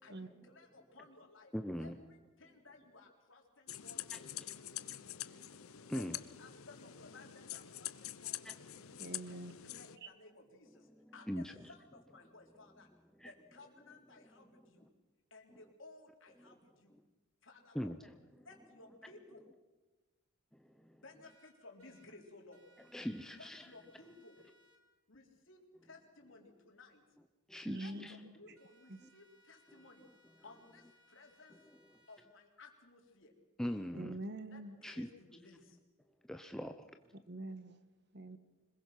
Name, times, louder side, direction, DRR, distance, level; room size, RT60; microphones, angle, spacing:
voice 1, 0.0-1.5 1.8-4.3 5.9-8.6 9.3-12.9 13.2-14.9 15.3-16.9 17.4-17.9 18.3-19.5 20.9-22.7 23.3-24.4 25.1-27.0 27.7-30.1 30.4-31.6 32.1-33.3 34.5-35.8, left 3 dB, 65° left, 2 dB, 4.0 m, -58 dB
voice 2, 1.5-2.0 4.1-4.2 4.7-5.1 5.3-6.2 8.4-9.0 11.0-11.5 13.2-13.3 17.7-18.1 20.5-21.0 22.9-23.6 27.5-28.2 29.0-29.1 33.6-34.2 34.8-35.1 36.3-36.9, equal, ahead, 6 dB, 0.7 m, -42 dB
sound 1, 3.7-10.0, left 13 dB, 85° left, 0.8 m, -46 dB
voice 3, 9.0-9.5 10.0-10.1 27.6-28.3 28.9-29.0 33.9-34.7 37.3-37.8 38.1-38.4, right 1 dB, 50° right, 11 dB, 1.4 m, -45 dB
sound 2, 21.2-22.1 22.5-24.8 28.6-32.2, equal, 90° right, 3.8 m, -69 dB
26.0 x 21.5 x 6.0 m, 1.2 s
head